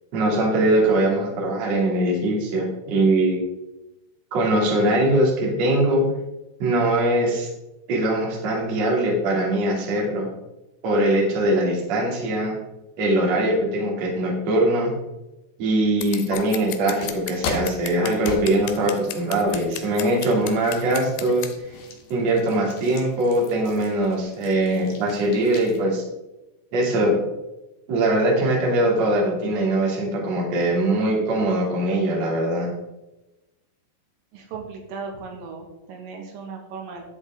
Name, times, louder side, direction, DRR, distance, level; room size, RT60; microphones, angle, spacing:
voice 1, 0.1-3.4 4.3-6.0 6.6-7.5 7.9-10.3 10.8-12.5 13.0-14.9 15.6-21.7 22.1-26.0 26.7-27.1 27.9-32.7, right 1 dB, 40° right, -2 dB, 2.9 m, -21 dB
Scissors, 16.0-21.5, left 12 dB, 85° left, 3.3 m, -35 dB
sound 1, 16.3-25.8, left 4 dB, 60° left, 3.0 m, -38 dB
voice 2, 34.3-37.1, right 5 dB, 80° right, 1 dB, 4.1 m, -37 dB
12.0 x 7.8 x 3.6 m, 0.99 s
omnidirectional pair, 5.9 m